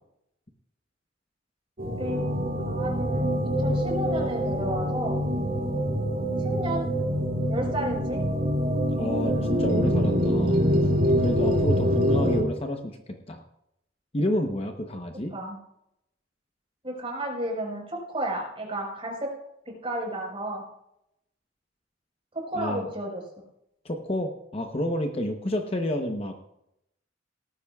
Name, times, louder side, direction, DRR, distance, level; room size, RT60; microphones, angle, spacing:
voice 1, 1.8-5.2 6.4-6.9 7.5-8.2 15.3-15.6 16.8-19.3 19.7-20.6 22.3-23.2, right 1 dB, 30° right, 0 dB, 4.5 m, -32 dB
sound 1, 1.8-12.4, equal, 50° right, 2.2 m, -25 dB
voice 2, 8.9-10.6 11.2-13.0 13.3-13.4 14.1-15.3 22.6-22.9 23.8-26.3, left 1 dB, 30° left, 4 dB, 0.9 m, -29 dB
18.0 x 13.5 x 2.4 m, 0.80 s
head